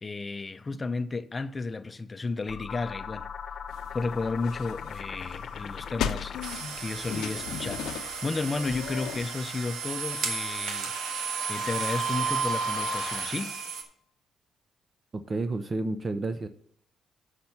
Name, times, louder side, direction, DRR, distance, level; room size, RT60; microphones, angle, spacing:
voice 1, 0.0-3.3 3.9-10.9 11.5-13.6, left 3 dB, 25° left, 0.5 m, -33 dB
sound 1, 2.5-6.9, left 7 dB, 55° left, 0.8 m, -39 dB
sound 2, 3.7-9.3, left 9 dB, 85° left, 0.6 m, -37 dB
sound 3, 6.4-13.8, right 5 dB, 80° right, 1.3 m, -33 dB
voice 2, 15.1-16.5, right 2 dB, 35° right, 0.5 m, -30 dB
6.5 x 5.8 x 7.1 m
cardioid pair, 90°, 0 cm